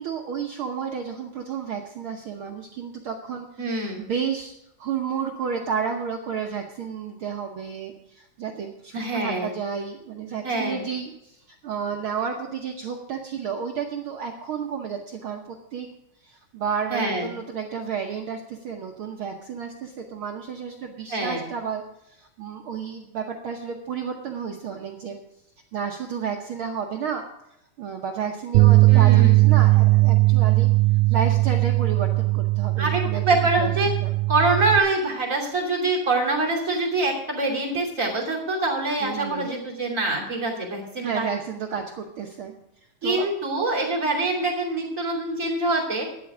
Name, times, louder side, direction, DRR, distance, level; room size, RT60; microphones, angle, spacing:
voice 1, 0.0-3.6 4.0-15.9 16.2-25.2 25.7-27.3 27.8-30.7 31.1-33.2 33.6-33.7 34.0-34.1 39.0-39.5 41.0-42.5 43.0-43.3, right 6 dB, 65° right, 2 dB, 1.4 m, -31 dB
voice 2, 3.6-4.0 8.9-9.5 10.4-10.9 16.9-17.3 21.1-21.4 28.9-29.4 32.8-33.9 34.3-41.3 43.0-46.1, right 2 dB, 25° right, -3 dB, 3.1 m, -25 dB
sound 1, 28.5-34.8, right 21 dB, 85° right, 2.0 m, -18 dB
12.0 x 10.0 x 4.9 m, 0.80 s
omnidirectional pair, 3.4 m